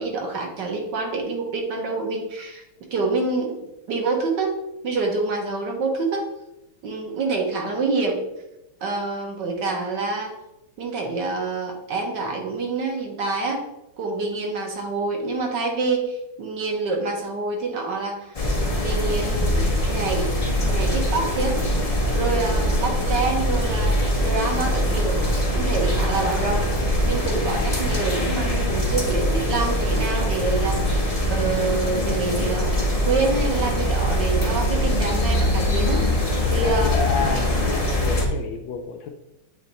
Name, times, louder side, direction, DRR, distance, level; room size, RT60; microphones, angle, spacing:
voice 1, 0.0-2.6 2.9-3.5 3.9-4.6 4.8-6.3 6.8-8.2 8.8-10.3 10.8-13.6 14.0-20.3 20.7-21.6 22.1-25.2 25.6-26.7 27.0-31.0 31.3-32.7 33.1-36.1 36.5-37.0, right 3 dB, 60° right, 1 dB, 1.6 m, -26 dB
sound 1, 18.3-38.3, equal, 40° left, 0.5 m, -22 dB
voice 2, 36.6-39.1, left 5 dB, 70° left, 5 dB, 1.3 m, -30 dB
7.9 x 3.3 x 4.0 m, 0.90 s
omnidirectional pair, 2.3 m